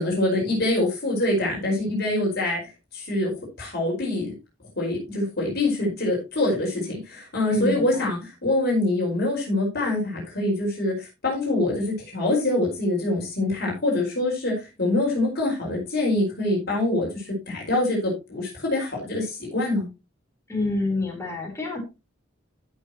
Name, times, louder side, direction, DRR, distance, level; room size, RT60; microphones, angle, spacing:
voice 1, 0.0-2.6 2.9-4.3 4.8-19.9, left 2 dB, 55° left, -2 dB, 5.2 m, -25 dB
voice 2, 7.5-8.1 20.5-21.8, left 2 dB, 15° left, 1 dB, 4.2 m, -27 dB
15.5 x 6.5 x 3.0 m, 0.26 s
head